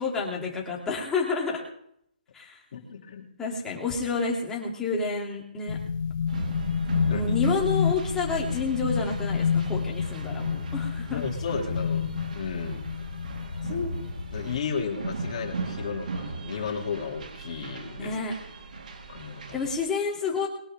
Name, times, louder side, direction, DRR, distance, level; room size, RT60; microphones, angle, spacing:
voice 1, 0.0-1.6 2.3-2.6 3.4-5.8 7.1-11.2 18.0-18.3 19.5-20.5, left 4 dB, 10° left, -3 dB, 3.3 m, -29 dB
voice 2, 2.7-3.3 7.1-7.3 11.1-12.0 12.3-12.9 13.6-14.0 14.3-18.1 19.1-19.7, left 6 dB, 45° left, 1 dB, 3.3 m, -33 dB
sound 1, 5.7-14.6, left 6 dB, 65° left, 1.5 m, -29 dB
sound 2, 6.3-19.9, right 3 dB, 60° right, 2.5 m, -38 dB
22.5 x 11.0 x 3.8 m, 0.73 s
hypercardioid pair, 160°, 5 cm